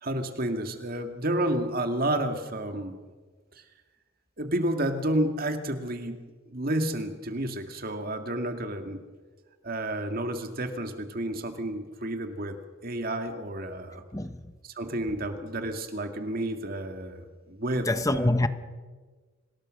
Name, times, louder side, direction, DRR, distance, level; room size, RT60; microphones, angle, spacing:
voice 1, 0.0-3.0 4.4-6.2 6.5-9.0 9.6-12.6 12.8-14.0 14.7-18.2, right 1 dB, 45° right, 2.0 m, -30 dB
voice 2, 14.1-14.5 17.8-18.5, left 1 dB, 15° left, 0.9 m, -26 dB
26.0 x 19.0 x 6.5 m
head